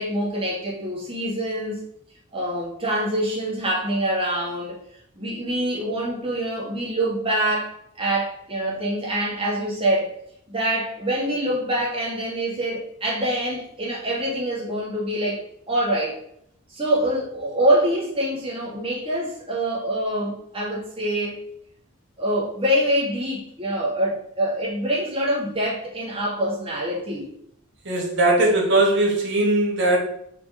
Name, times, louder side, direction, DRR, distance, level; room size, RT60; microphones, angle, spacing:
voice 1, 0.0-1.8 2.3-4.8 5.1-10.1 10.5-16.2 16.7-21.4 22.2-27.3, right 1 dB, 25° right, -5 dB, 2.3 m, -25 dB
voice 2, 27.9-30.0, right 2 dB, 55° right, -2 dB, 2.0 m, -19 dB
5.2 x 4.6 x 5.1 m, 0.72 s
head